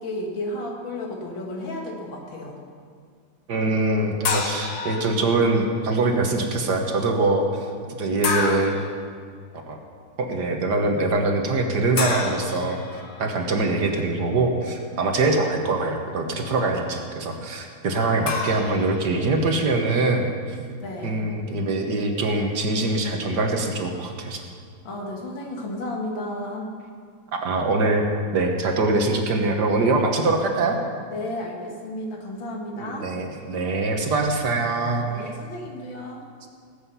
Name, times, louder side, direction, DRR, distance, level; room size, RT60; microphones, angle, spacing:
voice 1, 0.0-2.6 20.7-21.3 24.8-26.7 31.1-33.1 35.0-36.2, left 1 dB, 70° left, 0 dB, 2.6 m, -33 dB
voice 2, 3.5-8.8 9.7-9.8 10.2-20.6 21.0-24.4 27.3-28.0 28.3-30.8 32.8-35.3, right 2 dB, 60° right, 3 dB, 1.7 m, -23 dB
sound 1, 4.2-5.6 8.2-9.0 12.0-13.5 18.3-19.5, left 4 dB, 55° left, 1.5 m, -29 dB
19.0 x 8.7 x 5.7 m, 2.1 s
omnidirectional pair, 2.2 m